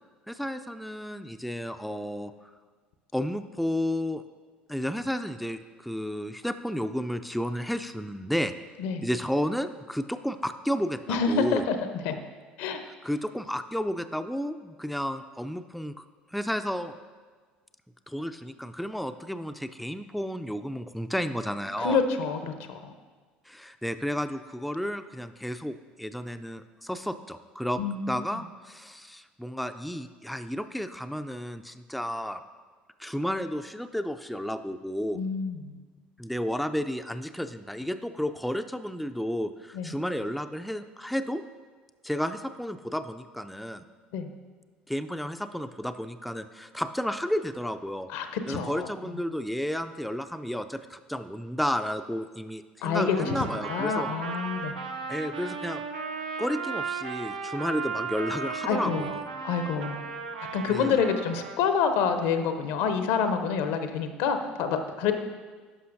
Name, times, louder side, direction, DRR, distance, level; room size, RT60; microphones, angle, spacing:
voice 1, 0.3-2.5 3.1-4.2 4.7-8.5 9.0-11.7 12.8-16.0 16.3-16.9 18.1-22.0 23.5-27.8 28.1-32.4 33.0-35.2 36.2-41.4 42.0-43.8 44.9-48.1 48.5-54.1 55.1-55.8 56.4-59.3 60.7-61.1, equal, ahead, 8 dB, 0.3 m, -32 dB
voice 2, 11.1-12.1 12.6-12.8 21.8-22.9 27.8-28.4 35.1-35.7 39.7-40.0 44.1-44.3 48.1-48.9 52.8-53.4 53.7-54.7 58.7-59.0 59.4-60.0 60.5-65.1, left 6 dB, 65° left, 8 dB, 0.6 m, -27 dB
Trumpet, 53.1-61.6, right 5 dB, 85° right, 0.5 m, -35 dB
11.0 x 5.6 x 2.5 m, 1.4 s
hypercardioid pair, 65°, 5 cm